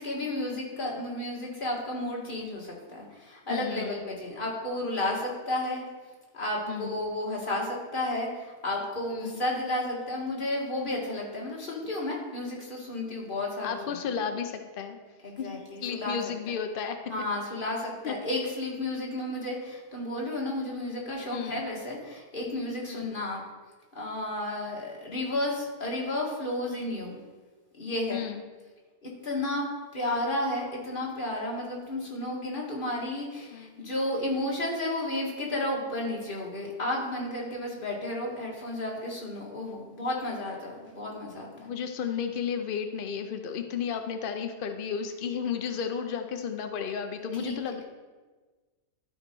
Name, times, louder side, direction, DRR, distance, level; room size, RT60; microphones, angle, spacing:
voice 1, 0.0-5.8 6.3-14.0 15.2-16.2 16.5-16.6 17.1-23.4 24.0-27.2 27.8-28.3 29.0-29.7 29.9-41.7 47.3-47.6, left 1 dB, 30° left, -3 dB, 1.9 m, -32 dB
voice 2, 3.5-4.0 6.7-7.0 9.1-9.4 13.6-15.0 15.4-17.0 18.0-18.2 21.3-21.6 22.9-23.1 28.1-28.4 33.5-33.8 41.6-47.8, left 7 dB, 85° left, 6 dB, 0.4 m, -33 dB
12.5 x 4.9 x 4.6 m, 1.3 s
omnidirectional pair, 1.8 m